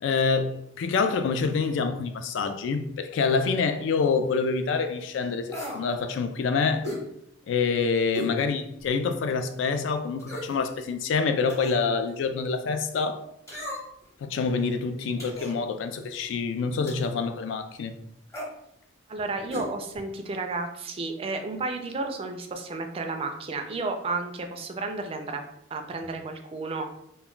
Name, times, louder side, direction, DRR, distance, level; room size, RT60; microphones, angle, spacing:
voice 1, 0.0-6.9 7.5-13.2 14.2-17.9, left 5 dB, 70° left, 0.3 m, -26 dB
sound 1, 5.5-5.9 6.8-7.1 8.1-8.4 8.9-9.0 10.2-10.6 11.5-11.8 13.5-14.0 15.2-15.6 16.9-17.1 18.3-18.5 19.5-19.7 20.0-20.1, left 1 dB, 15° left, 0.8 m, -35 dB
voice 2, 19.1-25.4 25.7-26.8, right 3 dB, 30° right, 0.3 m, -32 dB
2.2 x 2.1 x 3.7 m
head